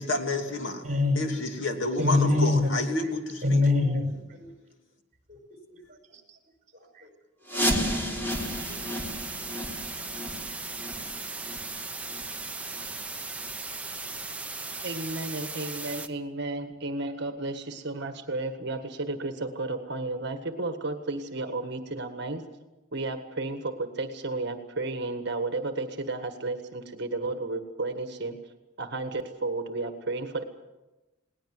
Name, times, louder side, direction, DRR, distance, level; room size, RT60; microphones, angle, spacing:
voice 1, 0.0-0.8 1.1-3.6, left 2 dB, 65° left, 4 dB, 2.9 m, -30 dB
voice 2, 0.8-1.3 2.0-2.7 3.4-4.5 5.3-5.4 5.7-6.4 6.7-7.1 7.6-8.0 8.3-8.8, left 2 dB, 40° right, 4 dB, 5.4 m, -26 dB
sound 1, 7.5-13.1 13.4-13.5 14.1-14.2 14.8-14.9 15.4-15.5, equal, 10° left, 3.3 m, -32 dB
sound 2, 8.3-16.1, right 3 dB, 5° right, 1.0 m, -37 dB
voice 3, 14.8-22.4 22.9-28.4 28.8-30.4, right 2 dB, 55° right, 7 dB, 1.7 m, -33 dB
21.0 x 19.0 x 7.8 m, 1.0 s
head